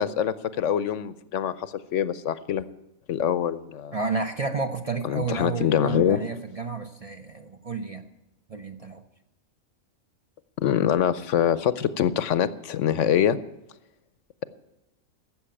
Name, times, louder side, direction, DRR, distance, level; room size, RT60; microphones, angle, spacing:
voice 1, 0.0-1.5 1.9-2.7 3.1-4.0 5.1-6.2 10.6-13.4, left 9 dB, 70° left, 15 dB, 0.9 m, -24 dB
voice 2, 3.9-8.0 8.5-9.0, right 4 dB, 35° right, 6 dB, 0.7 m, -31 dB
13.0 x 7.6 x 8.7 m, 0.95 s
omnidirectional pair, 1.4 m